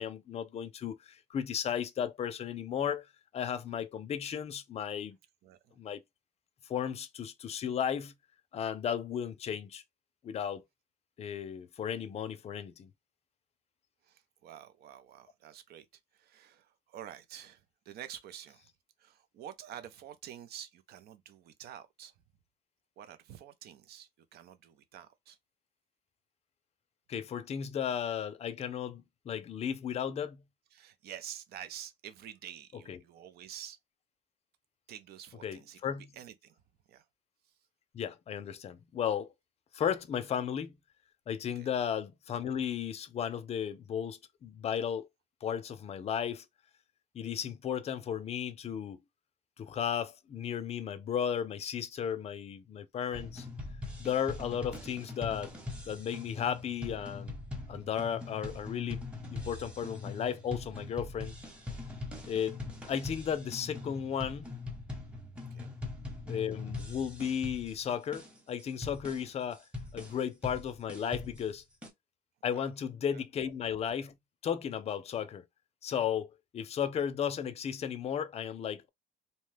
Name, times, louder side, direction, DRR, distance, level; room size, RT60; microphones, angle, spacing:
voice 1, 0.0-3.0 3.3-5.2 5.8-6.0 6.7-8.1 8.5-9.8 10.2-10.6 11.2-12.9 27.1-30.4 32.9-33.0 35.4-36.1 37.9-39.3 39.7-40.8 41.3-45.1 45.4-46.4 47.1-49.0 49.6-53.5 54.0-55.5 55.9-57.4 57.7-59.0 59.3-61.3 62.3-62.6 62.9-64.5 66.3-69.6 69.9-71.6 72.4-74.1 74.4-75.4 75.8-78.9, left 8 dB, 40° left, 0.5 m, -34 dB
voice 2, 5.4-5.8 14.0-15.9 16.1-18.7 19.0-22.1 23.0-25.4 30.7-33.8 34.9-36.6 36.9-37.1 37.4-37.6 41.6-41.7 65.5-65.7 72.5-72.7 73.1-73.2, right 10 dB, 70° right, 0.6 m, -48 dB
sound 1, 53.1-71.9, left 3 dB, 5° right, 1.0 m, -42 dB
2.7 x 2.2 x 3.2 m
cardioid pair, 110°, 17 cm